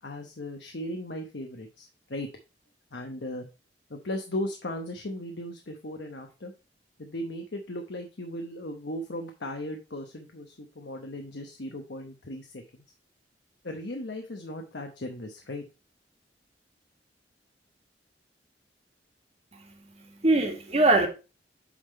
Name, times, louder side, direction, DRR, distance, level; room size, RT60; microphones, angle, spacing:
voice 1, 0.0-2.3 2.9-3.5 3.9-6.5 7.0-12.6 13.6-15.7, left 1 dB, 70° left, 3 dB, 1.0 m, -37 dB
voice 2, 19.5-21.1, right 2 dB, 40° right, 3 dB, 1.7 m, -24 dB
8.6 x 3.8 x 4.2 m, 0.30 s
head